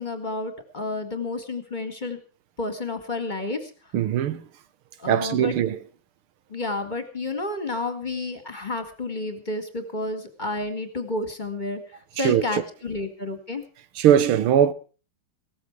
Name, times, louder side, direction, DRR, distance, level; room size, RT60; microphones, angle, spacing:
voice 1, 0.0-2.2 2.6-3.7 5.0-5.5 6.5-11.8 12.2-13.6, left 2 dB, 20° left, 1.9 m, -30 dB
voice 2, 3.9-4.4 5.1-5.8 12.2-12.6 14.0-14.7, right 10 dB, 80° right, 1.9 m, -20 dB
17.0 x 14.0 x 4.7 m
omnidirectional pair, 2.4 m